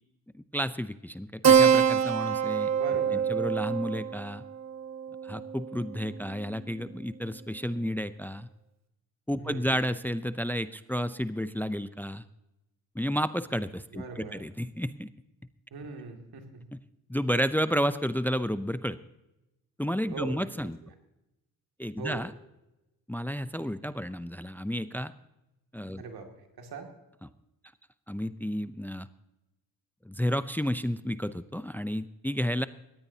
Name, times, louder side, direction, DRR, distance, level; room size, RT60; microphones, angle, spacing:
voice 1, 0.5-2.7 3.1-4.4 5.2-8.5 9.3-12.2 13.0-15.1 17.1-19.0 19.8-20.8 21.8-22.3 23.1-25.1 25.7-26.0 28.1-29.1 30.1-32.7, equal, 5° left, 13 dB, 0.6 m, -31 dB
Keyboard (musical), 1.4-6.4, right 7 dB, 45° right, 1.2 m, -25 dB
voice 2, 2.7-3.3 9.4-9.8 13.9-14.4 15.7-16.6 20.1-20.5 20.8-20.9 22.0-22.3 26.0-26.9, right 5 dB, 80° right, 3 dB, 2.5 m, -41 dB
20.0 x 16.0 x 2.8 m, 0.93 s
cardioid pair, 55°, 37 cm